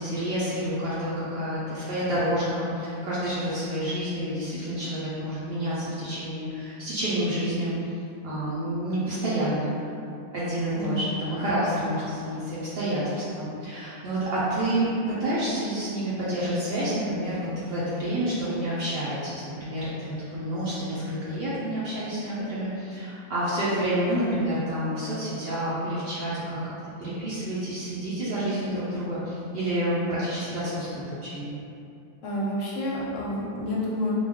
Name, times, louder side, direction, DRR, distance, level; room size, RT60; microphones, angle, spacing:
voice 1, 0.0-7.9 8.2-9.7 10.3-14.9 15.2-26.7 27.0-31.6, right 1 dB, 60° right, -10 dB, 0.7 m, -29 dB
voice 2, 10.7-11.2 32.2-34.1, left 1 dB, 70° left, -5 dB, 0.9 m, -29 dB
2.3 x 2.2 x 3.4 m, 2.7 s
omnidirectional pair, 1.5 m